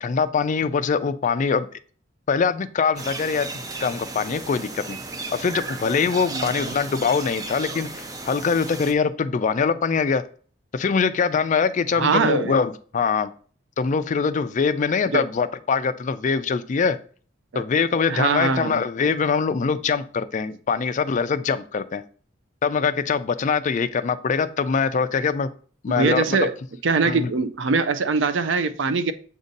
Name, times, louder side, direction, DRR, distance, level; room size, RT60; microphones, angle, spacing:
voice 1, 0.0-1.7 2.3-5.0 5.3-10.2 10.7-13.3 13.8-17.0 17.6-22.0 22.6-25.5 25.8-26.4 27.1-27.3, left 5 dB, 40° left, 0.4 m, -23 dB
sound 1, 3.0-8.9, right 3 dB, 20° right, 0.5 m, -34 dB
voice 2, 6.3-6.7 11.9-12.6 15.1-15.2 17.5-17.6 18.1-18.8 25.9-26.6 26.8-29.1, right 4 dB, 65° right, 0.5 m, -22 dB
7.1 x 2.7 x 5.2 m
head